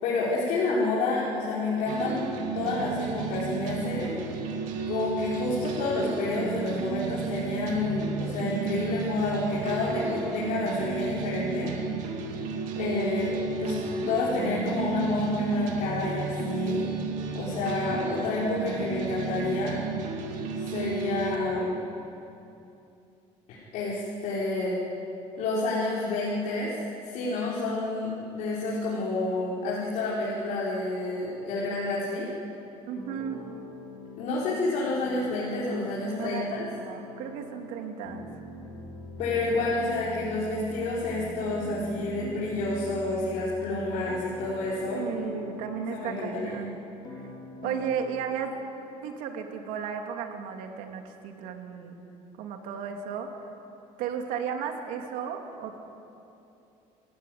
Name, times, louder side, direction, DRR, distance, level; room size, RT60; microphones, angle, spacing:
voice 1, 0.0-4.1 4.9-11.7 12.8-13.8 14.1-16.8 17.3-19.8 20.6-21.7 23.5-24.8 25.4-26.7 27.0-32.3 34.2-36.7 39.2-45.0 45.9-46.5, left 2 dB, 65° left, -7 dB, 5.2 m, -29 dB
sound 1, 1.9-21.4, right 4 dB, 70° right, 2.6 m, -32 dB
voice 2, 32.9-33.6 36.1-38.3 44.9-46.8 47.2-47.3 47.6-48.5 49.0-51.9 52.4-53.3 54.0-55.8, right 7 dB, 85° right, 3 dB, 2.9 m, -34 dB
sound 2, 33.0-47.8, left 2 dB, 30° left, 3.9 m, -42 dB
27.5 x 16.5 x 9.6 m, 2.8 s
cardioid pair, 165°, 13 cm